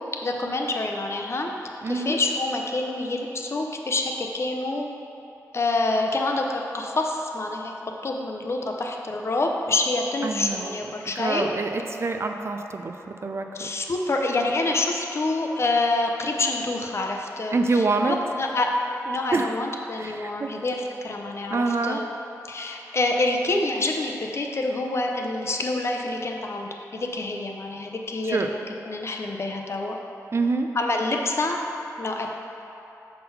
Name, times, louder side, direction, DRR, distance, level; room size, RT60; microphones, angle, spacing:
voice 1, 0.2-1.5 1.9-4.9 5.5-7.7 8.0-11.5 13.5-18.7 19.0-22.1 22.5-30.0 30.8-31.6 32.0-32.3, left 2 dB, 45° left, 2 dB, 0.6 m, -27 dB
voice 2, 1.8-2.2 10.2-13.7 17.5-18.2 19.3-19.5 20.0-20.5 21.5-22.0 28.2-28.5 30.3-30.7, right 3 dB, 45° right, 5 dB, 0.4 m, -26 dB
5.7 x 3.7 x 5.6 m, 3.0 s
cardioid pair, 75°, 6 cm